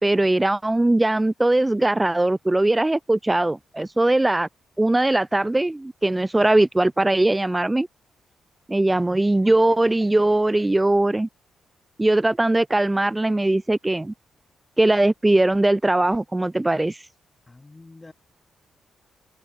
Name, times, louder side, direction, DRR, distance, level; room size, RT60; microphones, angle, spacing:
voice 1, 0.0-4.5 4.8-7.9 8.7-11.3 12.0-14.1 14.8-17.1, right 2 dB, 15° right, 1.0 m, -20 dB
voice 2, 17.5-18.1, left 2 dB, 20° left, 6.9 m, -46 dB
cardioid pair, 70°, 0 cm